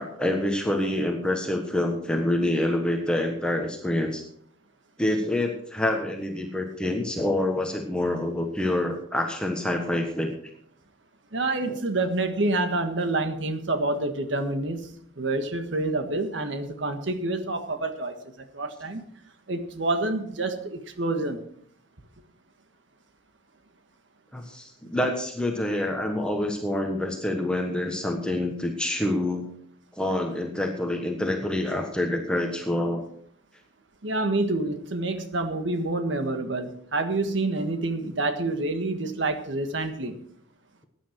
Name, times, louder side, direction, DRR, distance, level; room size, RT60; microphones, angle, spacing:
voice 1, 0.0-4.2 5.0-10.4 11.7-11.8 24.3-29.5 30.0-33.0, left 1 dB, 5° left, 2 dB, 1.3 m, -27 dB
voice 2, 11.3-18.2 18.5-19.0 19.5-21.4 34.0-40.2, right 2 dB, 65° right, 7 dB, 1.5 m, -27 dB
15.0 x 9.9 x 4.5 m, 0.64 s
head